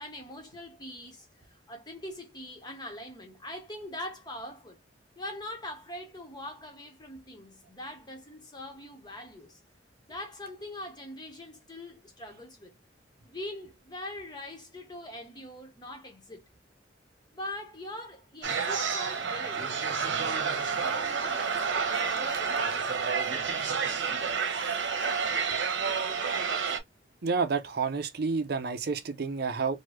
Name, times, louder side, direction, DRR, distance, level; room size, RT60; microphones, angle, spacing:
voice 1, 0.0-4.8 5.2-9.6 10.1-12.7 13.2-16.4 17.3-19.7 20.1-23.0, left 1 dB, 25° left, 1.0 m, -42 dB
sound 1, 18.4-26.8, right 5 dB, 90° right, 0.8 m, -29 dB
voice 2, 27.2-29.8, right 4 dB, 55° right, 0.6 m, -29 dB
3.1 x 2.2 x 3.1 m
head